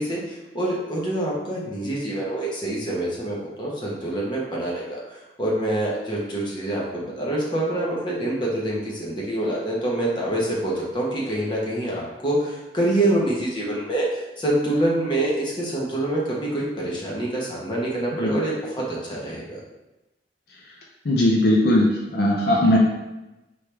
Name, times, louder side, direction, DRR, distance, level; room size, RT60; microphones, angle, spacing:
voice 1, 0.0-19.6, right 1 dB, 25° left, -4 dB, 1.0 m, -26 dB
voice 2, 21.0-21.9 22.1-22.8, left 1 dB, 60° left, -2 dB, 0.5 m, -18 dB
4.5 x 3.4 x 3.3 m, 1.0 s
head